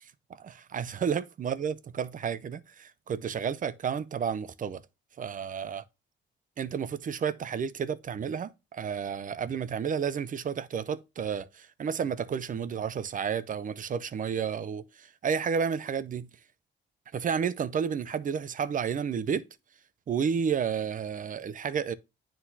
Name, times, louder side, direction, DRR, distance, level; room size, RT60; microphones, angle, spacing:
voice 1, 0.4-4.8 5.2-5.8 6.6-16.3 17.1-19.5 20.1-21.9, right 7 dB, 40° right, 0.6 m, -31 dB
9.7 x 3.9 x 2.7 m
cardioid pair, 90°, 20 cm